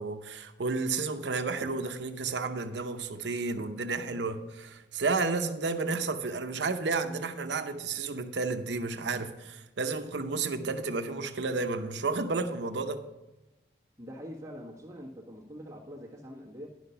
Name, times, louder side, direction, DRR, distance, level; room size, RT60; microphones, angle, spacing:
voice 1, 0.0-13.0, right 3 dB, 80° right, 0.8 m, -32 dB
voice 2, 14.0-16.7, equal, 15° right, 1.3 m, -44 dB
11.0 x 5.8 x 5.6 m
head